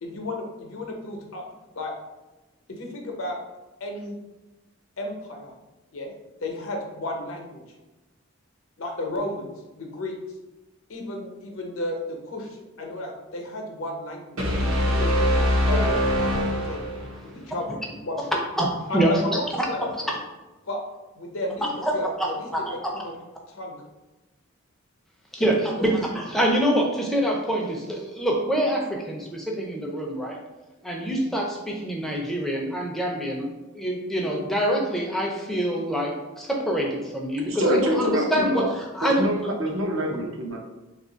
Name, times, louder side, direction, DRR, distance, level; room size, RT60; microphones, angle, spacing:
voice 1, 0.0-1.4 1.8-1.9 2.7-3.4 3.8-4.1 5.0-5.5 5.9-6.1 6.4-7.6 8.8-10.1 10.9-12.5 12.8-14.4 14.8-15.1 15.7-16.8 17.2-18.4 18.9-20.2 20.7-20.8 21.1-23.2 23.5-23.8 25.4-25.8, left 1 dB, 75° left, 1 dB, 0.7 m, -33 dB
sound 1, 14.4-17.3, equal, 90° right, 1.0 m, -23 dB
voice 2, 18.6-19.1 21.8-21.9 22.2-22.3 22.5-22.9 25.3-30.4 30.8-33.5 33.7-39.3, right 1 dB, ahead, -1 dB, 0.4 m, -25 dB
voice 3, 37.5-38.7 39.0-40.6, equal, 70° right, 0 dB, 0.6 m, -25 dB
2.8 x 2.4 x 3.8 m, 1.1 s
head